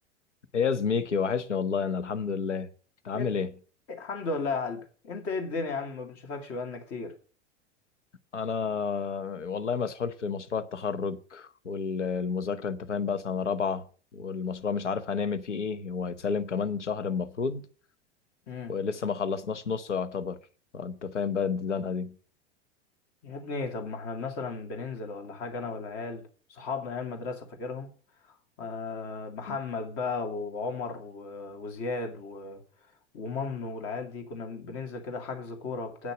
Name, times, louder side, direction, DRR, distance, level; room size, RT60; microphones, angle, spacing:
voice 1, 0.5-2.7 3.0-3.5 8.3-13.9 14.1-17.6 18.7-20.4 20.7-22.1 29.5-29.6, left 6 dB, 80° left, 1.0 m, -30 dB
voice 2, 3.9-7.1 18.5-18.7 23.2-27.9 28.6-32.6 33.1-36.1, left 4 dB, 40° left, 2.5 m, -35 dB
8.5 x 6.5 x 7.5 m
figure-of-eight pair, 85°, 35 cm